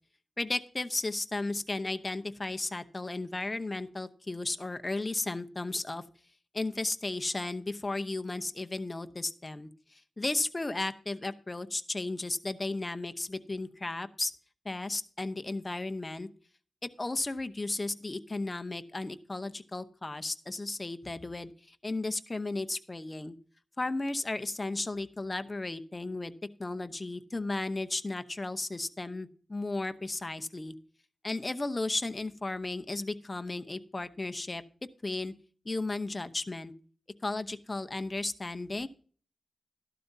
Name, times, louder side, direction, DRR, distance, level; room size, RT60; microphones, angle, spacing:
voice 1, 0.4-6.0 6.5-14.3 14.6-16.3 16.8-23.3 23.8-26.3 26.6-30.7 31.2-34.6 35.0-35.3 35.6-36.7 37.2-38.9, left 2 dB, 25° left, 9 dB, 0.8 m, -34 dB
13.5 x 12.0 x 2.7 m, 0.43 s
wide cardioid pair, 100°, 0 cm